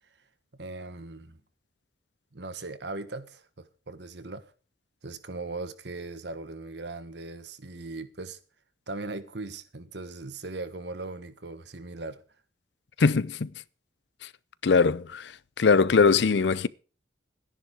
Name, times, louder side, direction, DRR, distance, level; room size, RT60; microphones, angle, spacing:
voice 1, 0.5-1.4 2.3-4.4 5.0-8.4 8.9-12.2, right 3 dB, 65° right, 1.3 m, -39 dB
voice 2, 13.0-13.5 14.6-15.3 15.6-16.7, left 5 dB, 70° left, 0.5 m, -21 dB
12.5 x 10.5 x 4.8 m
head